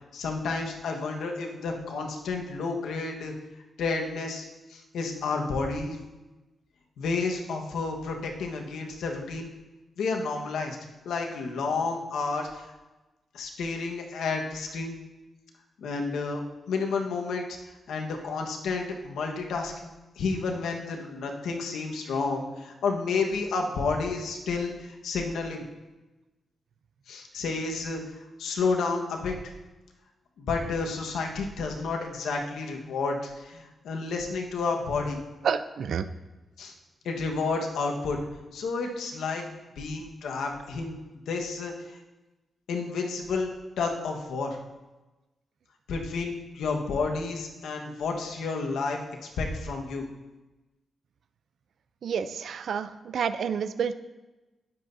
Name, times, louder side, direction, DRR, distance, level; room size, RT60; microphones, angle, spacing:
voice 1, 0.1-3.3 3.8-6.0 7.0-9.5 10.0-10.8 11.0-12.7 13.3-14.9 15.8-16.4 16.7-17.6 17.9-19.9 20.1-25.6 27.1-29.5 30.4-35.2 36.6-36.7 37.0-38.2 38.5-39.5 39.8-40.9 41.3-42.0 42.7-43.5 43.8-44.6 45.9-50.1, left 4 dB, 90° left, 1 dB, 1.4 m, -31 dB
voice 2, 35.4-36.1 52.0-53.9, right 7 dB, 70° right, 12 dB, 0.5 m, -29 dB
17.5 x 7.5 x 2.7 m, 1.1 s
cardioid pair, 75°, 0 cm